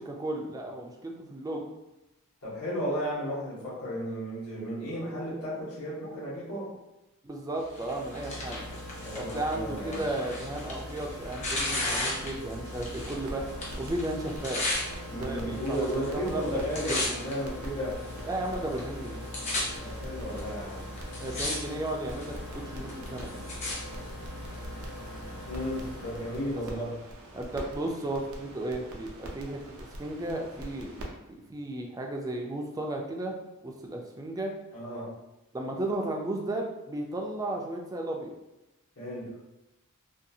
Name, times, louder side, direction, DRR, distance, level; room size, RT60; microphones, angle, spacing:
voice 1, 0.0-1.7 7.2-8.6 9.1-13.5 13.8-14.6 15.1-16.8 18.3-19.3 21.2-23.4 26.7-26.8 27.3-30.9 31.3-33.4 33.6-34.5 35.5-38.3, right 1 dB, 15° right, 1 dB, 0.3 m, -34 dB
voice 2, 2.4-6.7 9.0-10.1 15.1-18.0 19.8-20.9 25.5-26.9 34.7-35.1 39.0-39.3, equal, 80° left, -8 dB, 1.1 m, -34 dB
sound 1, 7.5-26.9, left 1 dB, 55° left, 1.1 m, -41 dB
Tearing, 7.8-13.2 13.5-14.8 15.6-16.1 16.4-17.3 18.0-18.1 18.8-18.9 19.1-19.6 20.4-20.5 21.0-21.6 21.9-22.3 22.9-23.8 24.5-24.6, left 2 dB, 35° left, 0.7 m, -34 dB
sound 2, 13.0-31.0, right 1 dB, 80° right, 0.5 m, -45 dB
2.6 x 2.3 x 2.7 m, 0.97 s
head